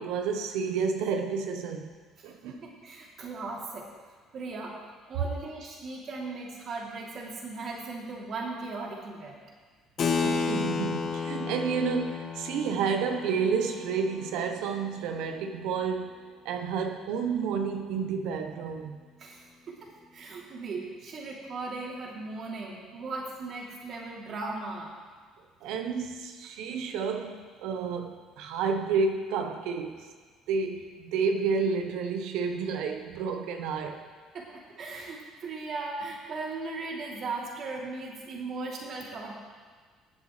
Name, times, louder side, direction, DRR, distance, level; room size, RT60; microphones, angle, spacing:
voice 1, 0.0-1.9 2.2-2.6 10.2-19.0 25.6-30.1 30.5-34.0, right 5 dB, 75° right, 6 dB, 1.0 m, -30 dB
voice 2, 2.5-3.9 4.3-9.4 19.2-19.4 19.7-24.9 34.3-39.3, right 3 dB, 55° right, -3 dB, 3.1 m, -38 dB
Keyboard (musical), 10.0-16.0, left 5 dB, 50° left, 1.5 m, -33 dB
19.5 x 8.2 x 3.3 m, 1.5 s
supercardioid pair, 75°, 0 cm